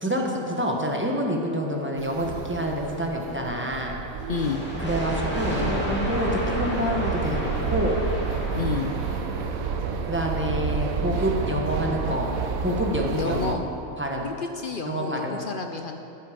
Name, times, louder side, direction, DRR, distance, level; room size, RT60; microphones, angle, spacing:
voice 1, 0.0-4.0 4.8-8.0 10.1-12.3 12.6-13.6 14.0-14.3 14.8-15.4, equal, 10° right, 0 dB, 1.1 m, -27 dB
sound 1, 2.0-13.6, right 6 dB, 85° right, 1.2 m, -30 dB
voice 2, 4.3-4.6 8.5-8.9 13.2-13.6 14.2-16.0, left 5 dB, 55° left, 5 dB, 0.6 m, -30 dB
sound 2, 4.3-9.8, equal, 10° left, 2.3 m, -32 dB
14.5 x 8.4 x 5.1 m, 2.9 s
omnidirectional pair, 1.4 m